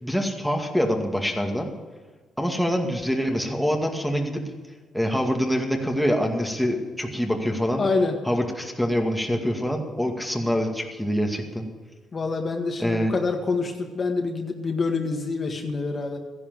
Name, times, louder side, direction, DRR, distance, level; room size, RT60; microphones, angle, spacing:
voice 1, 0.0-1.7 2.4-4.4 4.9-7.8 8.3-11.7 12.8-13.1, equal, ahead, 1 dB, 2.2 m, -25 dB
voice 2, 7.8-8.2 12.1-16.2, left 3 dB, 40° left, 4 dB, 1.8 m, -26 dB
14.0 x 11.0 x 7.8 m, 1.4 s
cardioid pair, 90°, 0 cm